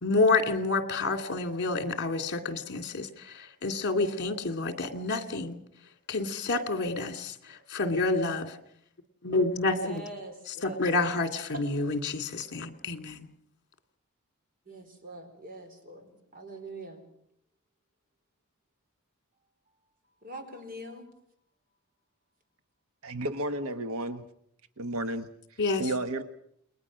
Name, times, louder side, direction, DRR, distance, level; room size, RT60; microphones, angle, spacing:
voice 1, 0.0-3.1 3.6-5.6 6.1-8.5 9.2-10.0 10.6-13.3 25.6-25.8, left 3 dB, 50° left, 8 dB, 2.4 m, -28 dB
voice 2, 9.7-10.9 11.5-11.6 14.7-17.1 20.2-21.1, right 1 dB, 40° right, 6 dB, 4.4 m, -43 dB
voice 3, 23.0-24.2 24.8-26.2, right 1 dB, 70° right, 9 dB, 1.2 m, -33 dB
29.5 x 21.0 x 6.3 m, 0.70 s
head